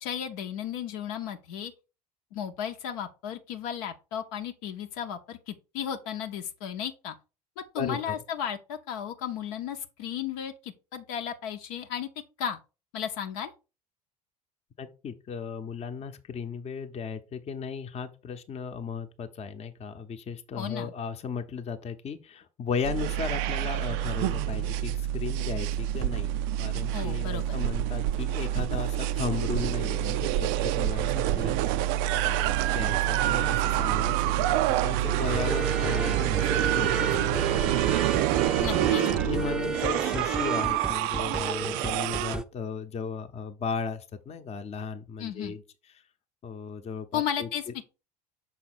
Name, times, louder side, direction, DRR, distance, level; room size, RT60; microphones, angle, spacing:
voice 1, 0.0-1.7 2.3-7.1 7.6-12.1 12.4-12.6 12.9-13.5 20.6-20.9 26.9-27.6 38.6-39.1 45.2-45.5 47.1-47.8, left 9 dB, 65° left, 0.8 m, -34 dB
voice 2, 7.8-8.2 14.8-26.3 26.6-37.9 38.7-45.6 46.4-47.5, left 6 dB, 30° left, 0.9 m, -36 dB
sound 1, 22.8-42.4, right 13 dB, 55° right, 0.4 m, -27 dB
sound 2, 35.0-42.4, right 2 dB, 5° right, 0.6 m, -33 dB
6.2 x 4.2 x 4.1 m
figure-of-eight pair, 70°, 20 cm